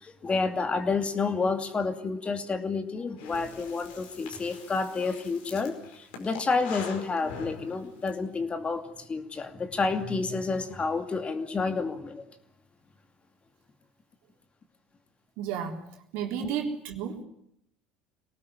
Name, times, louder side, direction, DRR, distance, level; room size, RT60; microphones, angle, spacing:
voice 1, 0.0-5.8 6.2-12.2 16.4-16.6, left 4 dB, 25° left, 8 dB, 2.5 m, -29 dB
Breathing, 3.2-8.1, left 6 dB, 75° left, 4.9 m, -43 dB
voice 2, 15.4-15.9 16.1-17.2, right 8 dB, 65° right, 3 dB, 3.8 m, -32 dB
23.5 x 18.5 x 9.6 m, 0.75 s
hypercardioid pair, 70°, 4 cm